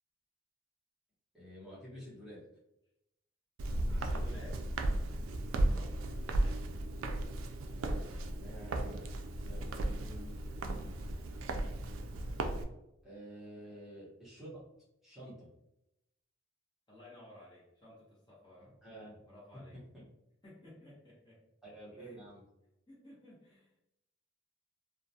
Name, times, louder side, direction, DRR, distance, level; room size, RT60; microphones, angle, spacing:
voice 1, 1.3-2.4 3.8-4.5 7.8-10.4 13.0-14.6 15.0-15.5 18.6-19.2 19.7-20.1 21.6-22.4, equal, ahead, -10 dB, 0.8 m, -50 dB
Walk footsteps, 3.6-12.6, right 1 dB, 80° right, 0.3 m, -35 dB
voice 2, 3.7-4.6 5.5-5.9 6.4-6.6 13.6-13.7 16.9-18.7 19.2-19.8 20.4-21.4 21.9-22.3 22.9-23.7, left 1 dB, 20° left, -7 dB, 0.8 m, -56 dB
2.3 x 2.1 x 2.6 m, 0.86 s
head